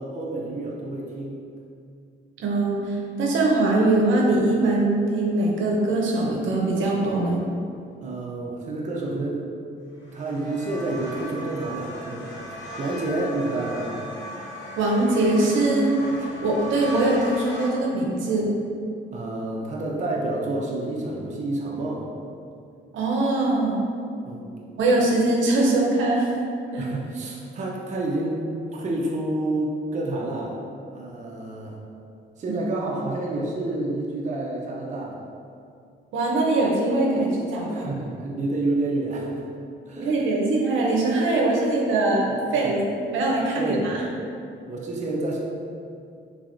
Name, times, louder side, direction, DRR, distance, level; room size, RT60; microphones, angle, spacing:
voice 1, 0.0-1.4 8.0-9.5 9.7-14.0 19.1-22.1 24.2-24.8 26.7-28.4 28.7-30.6 30.9-31.8 32.4-35.2 37.7-39.4 39.9-40.2 43.6-44.0 44.6-45.4, right 2 dB, 35° right, -3 dB, 0.5 m, -29 dB
voice 2, 2.4-7.4 14.8-15.9 16.2-18.5 22.9-23.8 24.8-26.3 26.7-26.9 32.5-32.6 36.1-38.0 40.0-42.8 43.1-44.0, right 2 dB, 75° right, -2 dB, 0.7 m, -22 dB
sound 1, 10.0-17.7, equal, 70° left, 0.8 m, -37 dB
3.3 x 3.3 x 2.5 m, 2.4 s
cardioid pair, 90°, 20 cm